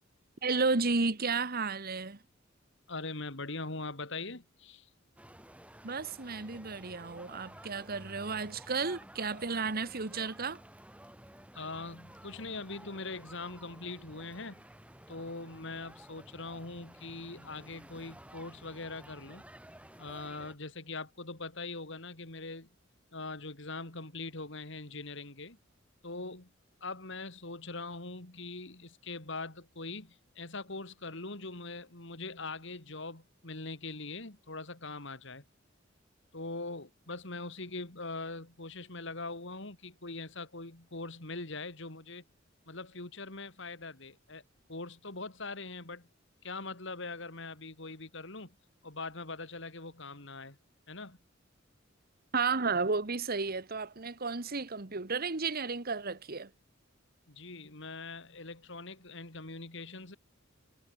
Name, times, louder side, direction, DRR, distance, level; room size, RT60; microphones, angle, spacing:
voice 1, 0.4-2.2 5.8-10.6 52.3-56.5, right 4 dB, 50° right, 1.6 m, -32 dB
voice 2, 2.9-4.9 11.5-14.6 15.1-19.4 20.0-22.7 23.1-25.6 26.0-26.5 26.8-35.4 36.3-42.2 42.7-44.4 44.7-46.1 46.4-48.6 48.8-50.6 50.9-51.2 57.3-60.2, left 3 dB, 65° left, 3.7 m, -42 dB
sound 1, 5.2-20.5, right 1 dB, 5° right, 7.7 m, -53 dB
head